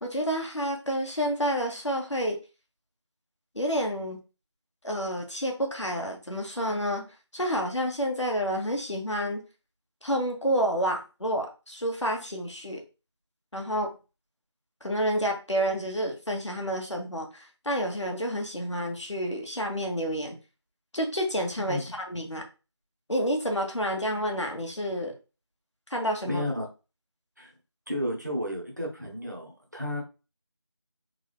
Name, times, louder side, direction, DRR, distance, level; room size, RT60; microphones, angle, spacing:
voice 1, 0.0-2.4 3.5-4.2 4.8-7.0 7.3-9.4 10.0-12.8 13.5-13.9 14.8-20.4 20.9-22.4 23.1-25.1 25.9-26.4, equal, 80° left, 2 dB, 1.3 m, -29 dB
voice 2, 26.2-26.7 27.4-27.5 27.9-30.0, left 1 dB, 40° right, 0 dB, 0.9 m, -32 dB
3.7 x 2.7 x 3.5 m, 0.31 s
figure-of-eight pair, 180°, 15 cm